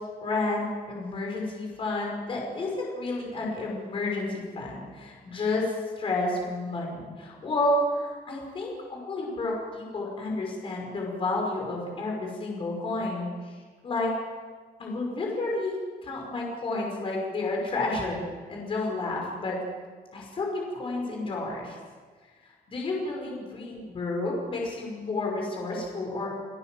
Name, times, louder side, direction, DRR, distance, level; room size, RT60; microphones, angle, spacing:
voice 1, 0.2-13.6 13.8-14.1 14.8-19.6 20.1-21.8 22.7-26.3, left 2 dB, 35° left, -1 dB, 5.5 m, -31 dB
30.0 x 17.5 x 7.8 m, 1.5 s
cardioid pair, 180°, 16 cm